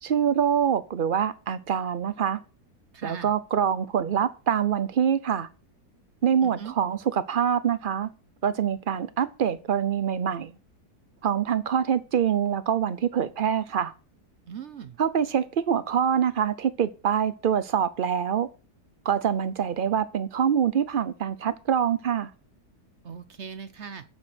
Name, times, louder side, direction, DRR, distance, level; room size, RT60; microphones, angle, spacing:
voice 1, 0.0-2.4 3.0-5.5 6.2-8.1 8.4-10.5 11.2-13.9 15.0-18.5 19.1-22.3, right 8 dB, 85° right, 0.4 m, -25 dB
voice 2, 2.9-3.3 6.4-6.7 14.5-15.0 23.0-24.0, right 7 dB, 55° right, 0.9 m, -39 dB
9.0 x 7.5 x 6.2 m
omnidirectional pair, 1.8 m